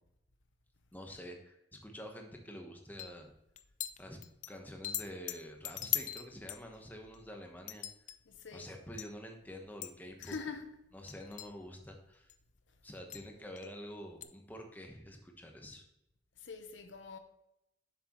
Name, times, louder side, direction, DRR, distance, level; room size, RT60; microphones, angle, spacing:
voice 1, 0.9-3.3 4.0-4.2 4.5-7.9 8.5-10.4 10.9-12.3 12.8-15.8, equal, 10° left, 1.0 m, -48 dB
sound 1, 3.0-3.2 3.6-4.5 4.8-7.3 7.7-8.2 8.6-8.7 9.0-9.1 9.6-9.9 10.2-10.4 11.1-11.5 12.3-12.4 13.1-13.3 13.6-13.7 14.2-14.3, left 12 dB, 40° left, 0.4 m, -39 dB
voice 2, 8.3-8.7 10.2-10.7 16.4-17.2, left 5 dB, 75° left, 0.8 m, -44 dB
7.6 x 6.5 x 3.0 m
head